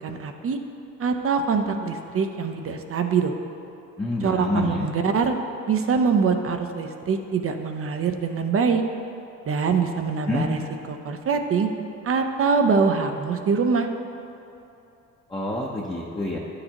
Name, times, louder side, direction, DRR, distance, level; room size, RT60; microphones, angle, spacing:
voice 1, 0.0-0.6 1.0-3.3 4.2-5.3 5.7-8.8 9.5-10.6 10.9-11.7 12.0-13.9, right 5 dB, 45° right, 5 dB, 0.6 m, -23 dB
voice 2, 4.0-4.9 10.2-10.5 15.3-16.4, left 2 dB, 15° left, -4 dB, 0.7 m, -27 dB
10.0 x 6.6 x 2.9 m, 2.8 s
cardioid pair, 90°, 30 cm